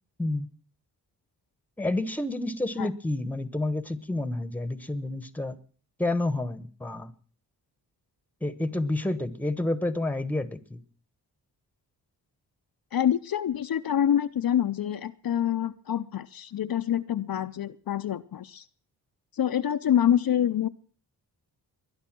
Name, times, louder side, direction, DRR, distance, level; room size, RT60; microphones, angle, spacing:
voice 1, 1.8-5.6 6.0-7.1 8.4-10.8, left 2 dB, 5° left, 14 dB, 1.2 m, -29 dB
voice 2, 12.9-18.6 19.3-20.7, left 10 dB, 60° left, 9 dB, 0.7 m, -26 dB
20.5 x 11.5 x 6.1 m, 0.43 s
wide cardioid pair, 115°, 41 cm